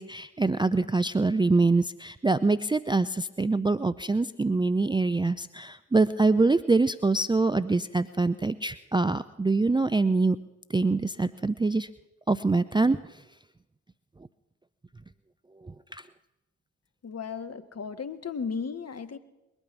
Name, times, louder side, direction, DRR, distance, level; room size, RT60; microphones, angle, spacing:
voice 1, 0.0-10.4 10.7-11.9 12.3-13.0 15.6-16.0, right 3 dB, 10° right, 13 dB, 0.5 m, -24 dB
voice 2, 17.0-19.2, left 5 dB, 40° left, 12 dB, 1.3 m, -35 dB
21.5 x 8.9 x 6.1 m, 1.0 s
hypercardioid pair, 40°, 39 cm